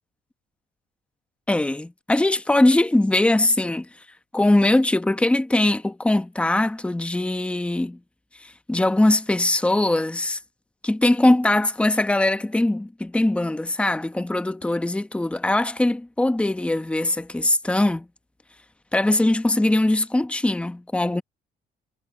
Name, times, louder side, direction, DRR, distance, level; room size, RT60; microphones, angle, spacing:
voice 1, 1.5-3.9 4.3-8.0 8.4-10.4 10.8-18.1 18.9-21.2, left 1 dB, 5° left, 1.0 m, -21 dB
cardioid pair, 110°, 17 cm